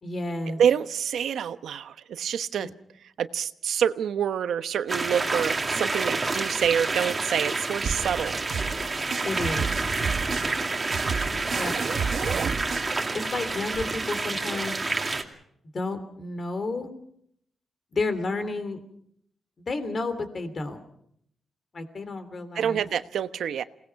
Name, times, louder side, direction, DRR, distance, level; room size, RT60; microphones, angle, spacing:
voice 1, 0.0-0.6 2.6-2.7 9.2-9.7 11.5-11.8 13.1-14.7 15.7-16.9 17.9-18.8 19.7-20.8 21.7-22.9, left 3 dB, 35° left, 9 dB, 3.0 m, -31 dB
voice 2, 0.6-2.7 3.2-8.4 22.5-23.6, right 8 dB, 80° right, 11 dB, 1.1 m, -27 dB
sound 1, 4.9-15.2, right 3 dB, 20° right, 2.3 m, -29 dB
sound 2, 7.8-13.8, right 5 dB, 55° right, 1.4 m, -32 dB
28.5 x 19.0 x 5.9 m, 0.70 s
wide cardioid pair, 155°, 0 cm